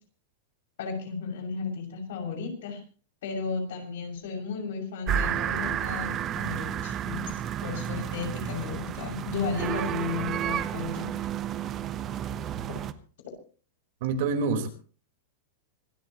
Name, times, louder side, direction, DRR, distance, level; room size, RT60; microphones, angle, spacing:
voice 1, 0.8-2.8 3.2-11.1, left 5 dB, 70° left, 2 dB, 6.8 m, -34 dB
sound 1, 5.1-12.9, right 9 dB, 25° right, 1.1 m, -31 dB
voice 2, 14.0-14.7, right 4 dB, 55° right, 4 dB, 4.4 m, -26 dB
26.0 x 14.0 x 3.1 m, 0.39 s
supercardioid pair, 160°, 0 cm